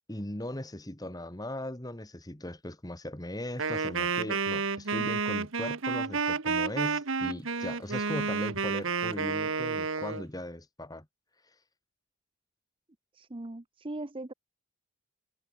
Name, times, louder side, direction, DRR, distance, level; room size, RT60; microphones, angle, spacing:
voice 1, 0.1-11.1, left 1 dB, 15° left, 1.7 m, -39 dB
Wind instrument woodwind instrument, 3.6-10.2, right 5 dB, 60° right, 1.2 m, -30 dB
voice 2, 13.1-14.3, right 2 dB, 25° right, 0.7 m, -39 dB
head